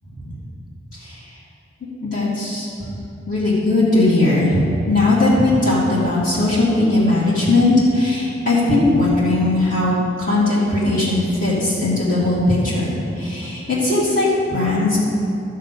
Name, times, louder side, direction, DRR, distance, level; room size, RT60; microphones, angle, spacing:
voice 1, 2.0-2.9 3.3-15.0, left 2 dB, 45° left, -8 dB, 2.5 m, -18 dB
12.5 x 6.7 x 5.4 m, 2.6 s
head